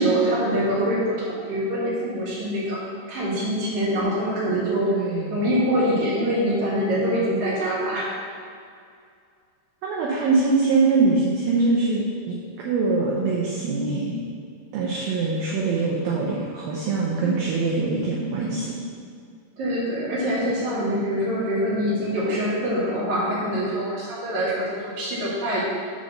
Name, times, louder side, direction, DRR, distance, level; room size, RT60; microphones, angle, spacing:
voice 1, 0.0-2.8 3.1-4.9 5.3-8.2 17.2-17.3 19.6-25.6, equal, 55° right, -7 dB, 2.9 m, -24 dB
voice 2, 4.9-5.5 9.8-14.2 14.7-18.8, right 3 dB, 75° right, -4 dB, 2.4 m, -23 dB
9.3 x 3.2 x 6.3 m, 2.3 s
omnidirectional pair, 4.7 m